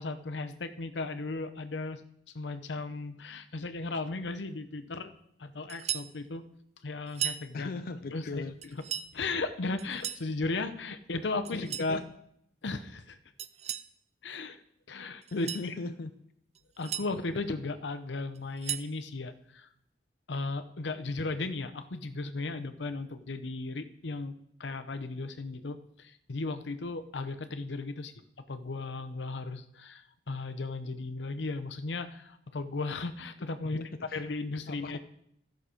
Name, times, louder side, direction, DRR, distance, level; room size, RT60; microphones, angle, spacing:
voice 1, 0.0-2.0 2.3-5.1 5.4-6.5 6.8-7.7 8.1-8.4 9.1-12.0 12.6-13.2 14.2-14.6 14.9-15.7 16.8-19.7 20.3-28.1 28.5-33.8 34.1-35.0, left 3 dB, 85° left, 9 dB, 0.7 m, -36 dB
sound 1, 5.7-6.1 7.1-7.5 8.6-9.1 9.8-10.3 11.4-11.9 13.4-13.9 15.2-15.7 16.5-17.1 18.3-18.9, right 9 dB, 40° right, 0.4 m, -36 dB
voice 2, 7.5-8.5 9.1-9.3 11.5-12.0 15.3-16.1 33.7-34.2 34.7-34.9, left 3 dB, 55° left, 9 dB, 0.5 m, -38 dB
13.5 x 6.6 x 5.0 m, 0.73 s
head